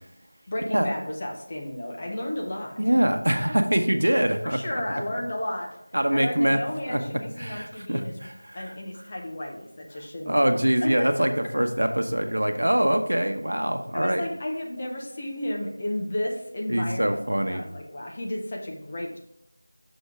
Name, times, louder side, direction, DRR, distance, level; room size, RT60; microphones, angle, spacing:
voice 1, 0.5-2.8 4.1-5.7 6.1-8.1 8.5-11.1 13.9-19.2, left 1 dB, 15° left, -1 dB, 0.5 m, -33 dB
voice 2, 2.8-4.6 5.9-6.6 6.9-7.0 7.4-8.6 10.3-14.2 16.7-17.6, right 1 dB, 70° right, 7 dB, 1.0 m, -24 dB
6.3 x 5.2 x 4.8 m, 0.82 s
figure-of-eight pair, 180°, 0 cm